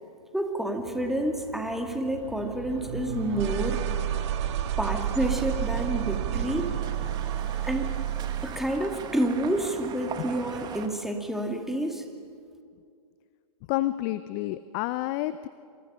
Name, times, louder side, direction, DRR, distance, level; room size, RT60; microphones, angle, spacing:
voice 1, 0.3-3.8 4.8-6.7 7.6-8.0 8.4-12.0, right 1 dB, ahead, 4 dB, 2.2 m, -29 dB
sound 1, 0.8-8.6, right 10 dB, 50° right, 2.0 m, -31 dB
sound 2, 4.6-10.9, right 7 dB, 20° right, 1.8 m, -41 dB
voice 2, 13.7-15.5, left 16 dB, 35° left, 14 dB, 0.6 m, -29 dB
27.5 x 27.0 x 5.6 m, 2.3 s
hypercardioid pair, 125°, 19 cm